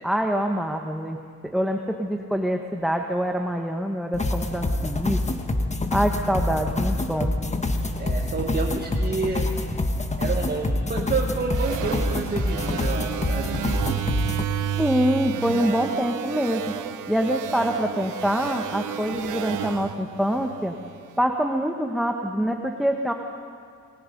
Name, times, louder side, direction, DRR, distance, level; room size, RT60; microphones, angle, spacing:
voice 1, 0.0-1.2 1.4-5.2 5.9-7.3 14.8-16.6 17.1-20.8 21.2-23.1, equal, ahead, 3 dB, 1.4 m, -25 dB
sound 1, 4.1-14.4, left 2 dB, 20° left, 1.7 m, -26 dB
voice 2, 8.0-9.5 10.2-13.6, right 4 dB, 30° right, 1 dB, 1.9 m, -29 dB
sound 2, 11.5-21.0, right 10 dB, 75° right, 1.2 m, -32 dB
29.0 x 20.5 x 5.4 m, 2.2 s
cardioid pair, 90°, 30 cm